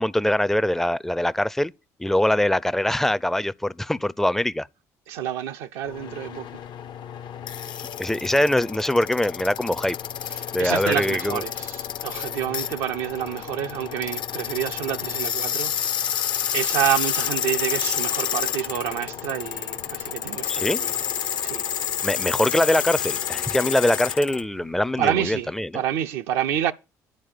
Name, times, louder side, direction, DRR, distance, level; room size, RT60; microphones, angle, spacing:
voice 1, 0.0-1.7 2.0-4.7 8.0-10.0 10.5-11.4 20.5-20.8 22.0-25.7, left 1 dB, 5° left, 0.4 m, -23 dB
voice 2, 5.1-6.5 10.3-21.0 21.4-21.6 25.0-26.7, right 10 dB, 70° right, 0.5 m, -28 dB
sound 1, 5.9-24.4, left 9 dB, 55° left, 0.5 m, -29 dB
Boat Water vehicle, 16.8-25.4, right 4 dB, 90° right, 2.3 m, -51 dB
10.5 x 4.5 x 7.4 m
hypercardioid pair, 55°, 9 cm